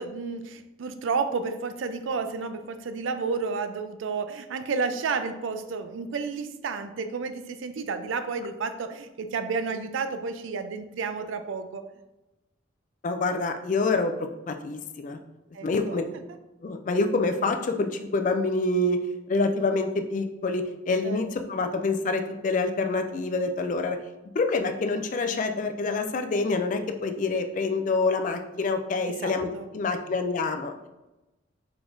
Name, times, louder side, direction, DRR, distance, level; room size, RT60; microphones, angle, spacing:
voice 1, 0.0-11.8 15.5-16.0 21.0-21.2 29.2-29.7, right 4 dB, 75° right, 9 dB, 0.4 m, -31 dB
voice 2, 13.0-14.1 14.5-15.2 15.6-16.0 16.6-19.0 19.3-24.0 24.3-30.7, left 3 dB, 40° left, 6 dB, 0.3 m, -26 dB
4.5 x 3.9 x 2.6 m, 1.0 s
head